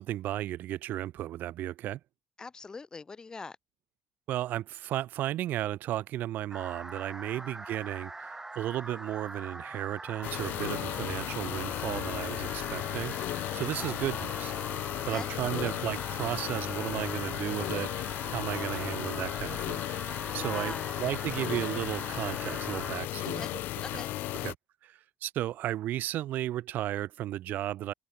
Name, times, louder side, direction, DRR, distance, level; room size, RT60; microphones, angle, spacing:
voice 1, 0.0-2.0 4.3-14.5 15.1-19.8 20.3-23.5 23.9-24.0 24.4-24.6 24.8-27.9, right 13 dB, 70° right, 2.0 m, -34 dB
voice 2, 2.4-3.6 7.3-7.4 13.7-14.0 14.9-15.8 18.5-18.8 20.4-21.0 23.3-23.5 23.8-24.5, left 4 dB, 25° left, 4.9 m, -43 dB
sound 1, 6.5-23.0, right 2 dB, 15° right, 3.2 m, -43 dB
sound 2, 10.2-24.5, left 16 dB, 80° left, 1.9 m, -35 dB
open air
cardioid pair, 130°, 3 cm